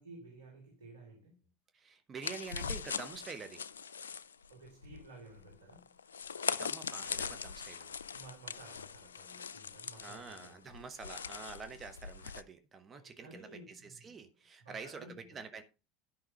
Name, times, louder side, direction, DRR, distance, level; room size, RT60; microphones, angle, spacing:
voice 1, 0.0-1.4 4.5-6.0 8.1-10.9 12.9-14.2 14.6-15.4, right 2 dB, 90° right, 2.9 m, -54 dB
voice 2, 1.7-3.6 6.6-8.0 10.0-15.6, right 5 dB, 30° right, 1.4 m, -47 dB
sound 1, 2.2-12.4, left 6 dB, 90° left, 0.4 m, -41 dB
11.0 x 5.7 x 5.4 m
hypercardioid pair, 80°, 0 cm